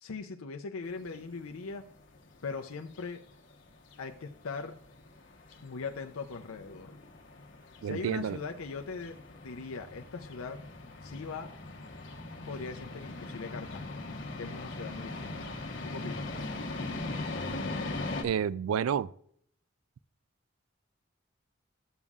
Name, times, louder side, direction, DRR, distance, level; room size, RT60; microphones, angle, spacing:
voice 1, 0.0-1.8 2.4-3.2 4.0-4.7 5.6-7.0 7.8-9.2 9.4-10.6 11.0-11.5 12.5-14.0 14.4-15.5 15.8-16.3, left 4 dB, 90° left, 0.6 m, -40 dB
sound 1, 0.9-18.2, left 2 dB, 60° left, 1.1 m, -40 dB
voice 2, 7.8-8.4 18.2-19.1, right 8 dB, 90° right, 0.3 m, -30 dB
12.0 x 7.1 x 2.4 m
head